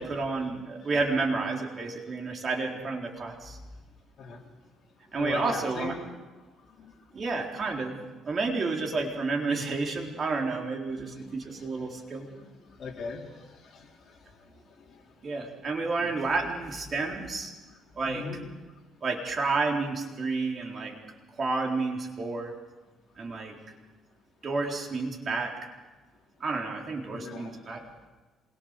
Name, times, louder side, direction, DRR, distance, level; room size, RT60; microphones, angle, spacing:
voice 1, 0.0-3.6 5.1-5.9 7.1-8.0 8.2-12.3 15.2-17.5 18.0-18.2 19.0-21.0 21.4-22.5 23.2-23.6 24.4-25.5 26.4-27.8, right 3 dB, 35° right, 0 dB, 4.0 m, -30 dB
voice 2, 5.2-6.0 6.8-7.0 11.0-12.0 12.2-15.1 16.0-16.2 18.0-18.4 27.0-27.6, left 4 dB, 45° left, 0 dB, 4.2 m, -41 dB
26.5 x 22.5 x 6.7 m, 1.2 s
cardioid pair, 120°, 0 cm